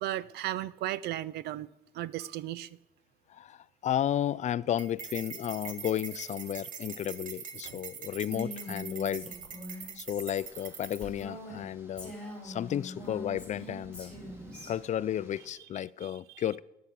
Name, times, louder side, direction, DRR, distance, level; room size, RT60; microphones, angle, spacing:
voice 1, 0.0-1.7 1.9-2.7 7.6-7.8 12.2-12.3 14.5-14.7 16.0-16.4, right 13 dB, 75° right, 0.6 m, -36 dB
voice 2, 3.3-9.3 10.0-12.1 12.4-14.2 14.7-16.6, left 10 dB, 45° left, 0.4 m, -33 dB
sound 1, 4.8-11.2, right 6 dB, 50° right, 1.4 m, -43 dB
Female speech woman speaking, 8.2-11.7 12.0-14.7, equal, 5° left, 4.9 m, -43 dB
sound 2, 10.3-15.5, right 1 dB, 15° right, 2.5 m, -54 dB
11.5 x 8.8 x 9.2 m
cardioid pair, 110°, 17 cm